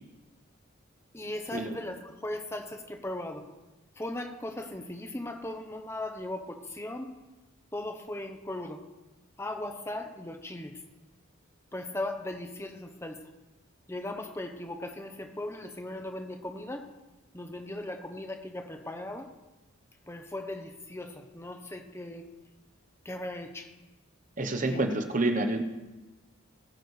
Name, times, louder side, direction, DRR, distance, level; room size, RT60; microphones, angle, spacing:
voice 1, 1.1-3.5 4.0-7.1 7.7-8.8 9.4-10.8 11.7-13.2 13.9-16.8 17.3-19.3 20.1-22.3 23.0-23.7 24.7-24.8, left 1 dB, 10° left, 5 dB, 0.9 m, -38 dB
voice 2, 24.4-25.6, right 2 dB, 40° right, 6 dB, 0.9 m, -28 dB
20.0 x 9.8 x 3.3 m, 1.1 s
head